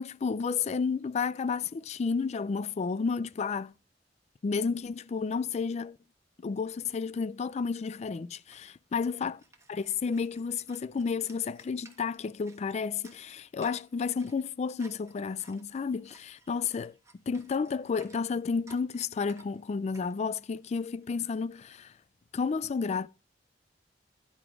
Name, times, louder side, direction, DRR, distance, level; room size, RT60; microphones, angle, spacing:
voice 1, 0.0-3.7 4.4-6.0 6.4-9.4 9.7-16.9 17.3-21.9 22.3-23.1, left 5 dB, 40° left, 0.3 m, -31 dB
sound 1, 7.6-7.7 7.9-21.8, right 3 dB, 15° right, 1.2 m, -59 dB
10.5 x 4.9 x 4.6 m
head